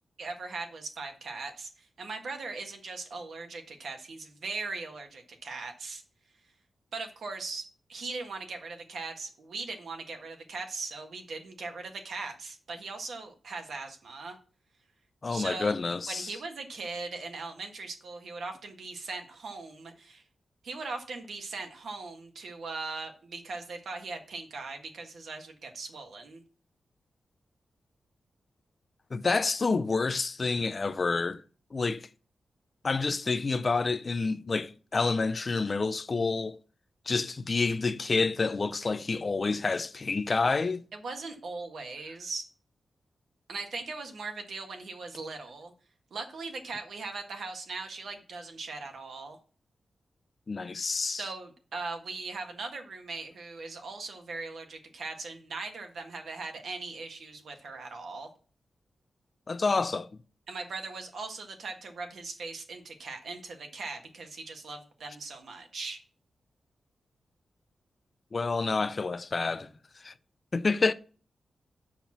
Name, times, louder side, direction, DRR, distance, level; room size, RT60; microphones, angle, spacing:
voice 1, 0.2-6.0 6.9-14.4 15.3-15.8 16.1-20.2 20.6-26.4 40.9-42.4 43.5-45.7 46.1-49.4 51.2-58.3 60.5-66.0, right 3 dB, 70° right, 1.5 m, -39 dB
voice 2, 15.2-16.3 29.1-31.4 31.7-32.1 32.8-36.6 37.1-40.8 50.5-51.2 59.5-60.1 68.3-69.7 70.0-70.1 70.5-70.9, left 4 dB, 35° left, 0.4 m, -28 dB
7.1 x 6.0 x 6.0 m
wide cardioid pair, 150°, 0 cm